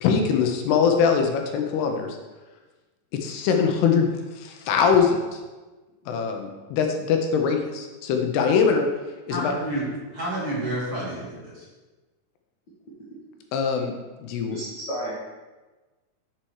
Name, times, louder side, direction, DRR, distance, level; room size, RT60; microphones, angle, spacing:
voice 1, 0.0-2.2 3.2-4.1 4.4-5.4 6.1-8.9 9.3-9.5 13.5-13.9 14.2-14.6, left 6 dB, 80° left, 4 dB, 2.8 m, -22 dB
voice 2, 9.3-11.6, right 1 dB, 35° right, -9 dB, 3.6 m, -30 dB
voice 3, 14.5-15.1, right 1 dB, 50° left, -8 dB, 1.2 m, -32 dB
7.7 x 7.3 x 4.7 m, 1.2 s
omnidirectional pair, 4.8 m